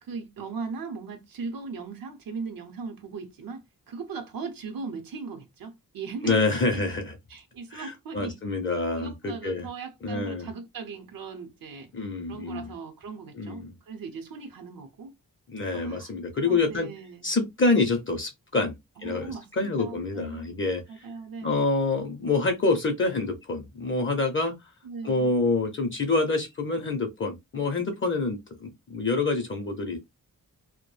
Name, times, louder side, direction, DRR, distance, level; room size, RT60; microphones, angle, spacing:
voice 1, 0.0-6.4 6.7-6.8 7.3-8.4 9.0-11.9 12.3-15.1 15.7-17.3 19.0-20.5 20.9-21.6 24.8-25.3, right 4 dB, 80° right, 0.7 m, -38 dB
voice 2, 6.2-7.2 7.7-9.7 10.0-10.5 11.9-12.7 13.4-13.7 15.5-16.9 17.2-18.7 19.0-21.1 21.4-24.5 25.0-30.0, left 3 dB, 35° left, 0.5 m, -27 dB
2.2 x 2.1 x 3.0 m
wide cardioid pair, 150°, 34 cm